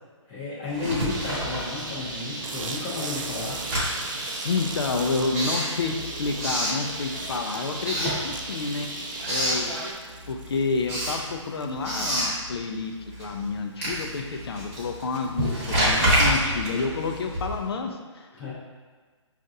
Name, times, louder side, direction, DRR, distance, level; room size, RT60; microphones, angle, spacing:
voice 1, 0.3-3.6 18.4-18.5, left 3 dB, 10° left, -10 dB, 0.6 m, -32 dB
Writing, 0.7-2.3 2.6-7.4 7.8-8.8 9.0-9.7 10.1-17.8, equal, 25° right, 1.0 m, -28 dB
Bird, 1.1-9.9, right 2 dB, 40° right, 0.6 m, -36 dB
sound 1, 2.4-11.9, right 4 dB, 85° right, 0.4 m, -41 dB
voice 2, 4.4-8.9 9.3-9.8 10.3-18.3, left 4 dB, 55° left, 3 dB, 0.4 m, -29 dB
5.2 x 2.5 x 2.6 m, 1.5 s
hypercardioid pair, 175°, 16 cm